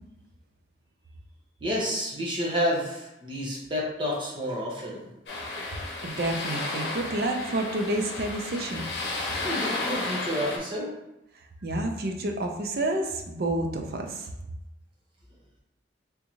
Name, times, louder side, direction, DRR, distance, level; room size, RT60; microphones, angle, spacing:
voice 1, 1.6-5.1 9.4-10.9, equal, 30° right, -4 dB, 0.7 m, -29 dB
sound 1, 5.3-10.6, left 2 dB, 70° left, 0.8 m, -33 dB
voice 2, 6.0-8.8 11.6-14.3, right 1 dB, 55° right, 3 dB, 0.5 m, -29 dB
3.6 x 2.6 x 2.9 m, 0.92 s
head